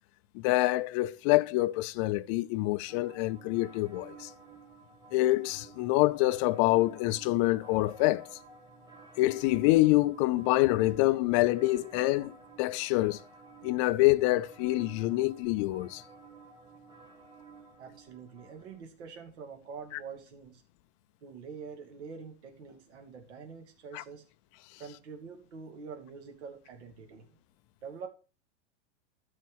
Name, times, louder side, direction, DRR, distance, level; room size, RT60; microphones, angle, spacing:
voice 1, 0.3-4.3 5.1-8.4 9.2-13.2 13.6-16.0 23.9-24.0, left 19 dB, 30° left, 0.4 m, -26 dB
sound 1, 2.9-18.8, right 4 dB, 10° right, 2.3 m, -53 dB
voice 2, 17.8-20.6 21.2-24.2 24.8-27.4 27.8-28.1, right 5 dB, 70° right, 2.5 m, -45 dB
13.0 x 4.7 x 6.2 m
supercardioid pair, 150°, 35 cm